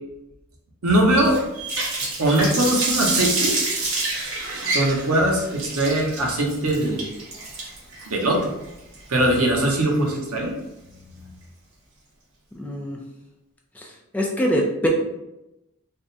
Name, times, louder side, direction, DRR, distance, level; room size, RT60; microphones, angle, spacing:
voice 1, 0.8-1.4 2.2-3.5 4.7-7.1 8.1-8.5 9.1-10.5 11.2-11.3, right 1 dB, 90° right, 0 dB, 0.8 m, -21 dB
Water tap faucet, 1.2-10.1, right 2 dB, 65° right, 1.0 m, -27 dB
voice 2, 12.5-13.0 13.8-14.9, equal, 5° left, -2 dB, 0.4 m, -24 dB
3.5 x 2.1 x 4.0 m, 0.93 s
head